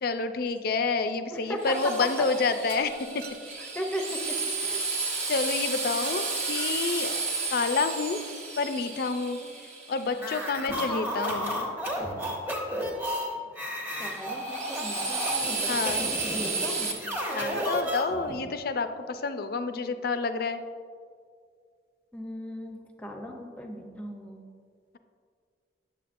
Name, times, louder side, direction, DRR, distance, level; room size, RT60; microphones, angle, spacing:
voice 1, 0.0-3.2 5.3-7.2 7.5-8.2 8.6-9.4 9.9-11.6 15.7-16.1 17.3-20.7, left 4 dB, 55° left, 9 dB, 0.4 m, -29 dB
voice 2, 1.3-1.9 2.2-2.3 3.6-5.0 9.4-9.5 14.0-17.1 22.1-24.4, equal, 5° left, 2 dB, 0.7 m, -37 dB
Drill, 1.6-10.5 13.9-16.9, right 4 dB, 40° right, 1.0 m, -33 dB
Shatter, 2.7-3.8 6.1-7.3, right 7 dB, 60° right, 0.6 m, -47 dB
sound 1, 10.1-18.4, equal, 10° right, 1.0 m, -32 dB
8.5 x 7.2 x 2.5 m, 2.1 s
head